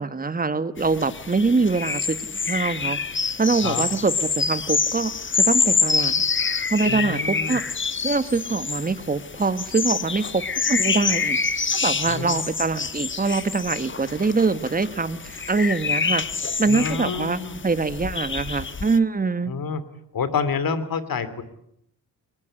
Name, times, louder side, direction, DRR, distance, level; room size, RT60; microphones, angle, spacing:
voice 1, 0.0-6.2 6.7-7.6 8.0-11.4 11.8-16.2 16.6-19.5, right 4 dB, 20° right, 13 dB, 1.5 m, -24 dB
sound 1, 0.8-19.0, left 5 dB, 30° left, 1.2 m, -26 dB
voice 2, 6.8-7.6 12.1-12.5 16.7-17.6 19.5-19.8 20.1-21.4, left 5 dB, 60° left, 14 dB, 2.9 m, -28 dB
22.0 x 20.0 x 10.0 m, 0.74 s
cardioid pair, 80°, 39 cm